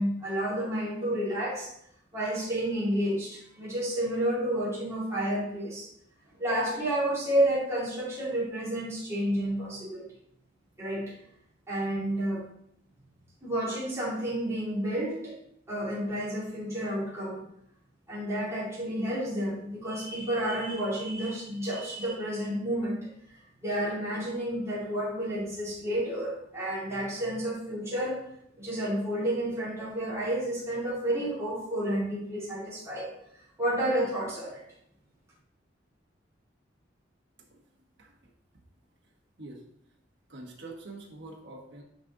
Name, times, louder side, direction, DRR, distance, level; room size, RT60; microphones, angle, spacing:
voice 1, 0.0-1.7 2.1-5.9 6.4-10.0 10.8-11.0 11.7-12.4 13.4-15.3 15.7-17.4 18.1-23.1 23.6-28.2 28.6-33.1 33.6-34.6, right 1 dB, 15° right, -9 dB, 3.0 m, -30 dB
voice 2, 40.3-41.8, right 2 dB, 65° right, -1 dB, 1.4 m, -45 dB
10.0 x 4.2 x 3.9 m, 0.73 s
head